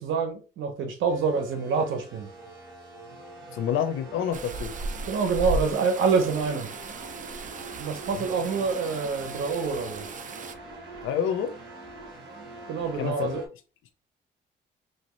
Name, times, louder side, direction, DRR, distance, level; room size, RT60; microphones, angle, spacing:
voice 1, 0.0-2.3 5.1-6.7 7.8-10.0 12.7-13.4, right 5 dB, 80° right, 0.8 m, -26 dB
sound 1, 1.1-13.5, right 2 dB, 60° right, 1.1 m, -44 dB
voice 2, 3.5-4.7 8.1-8.3 11.0-11.5 12.9-13.4, left 8 dB, 90° left, 0.5 m, -28 dB
sound 2, 4.3-10.5, right 3 dB, 40° right, 0.5 m, -36 dB
3.2 x 2.6 x 3.1 m
cardioid pair, 90°, 20 cm